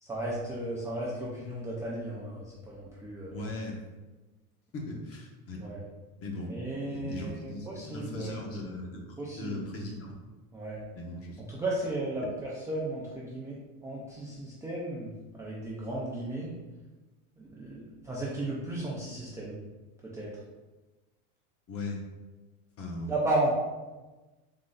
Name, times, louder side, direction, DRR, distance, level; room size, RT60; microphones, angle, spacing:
voice 1, 0.0-3.3 5.6-5.8 6.5-8.4 9.2-9.6 10.5-10.8 11.5-15.1 15.4-16.6 17.4-19.6 20.0-20.3 23.1-23.5, right 1 dB, 5° right, -7 dB, 0.4 m, -34 dB
voice 2, 3.3-3.8 4.7-5.6 6.2-6.6 6.8-10.1 11.0-11.6 21.7-22.0 22.8-23.1, left 2 dB, 30° left, 0 dB, 1.0 m, -38 dB
3.8 x 3.1 x 3.8 m, 1.2 s
supercardioid pair, 130°, 44 cm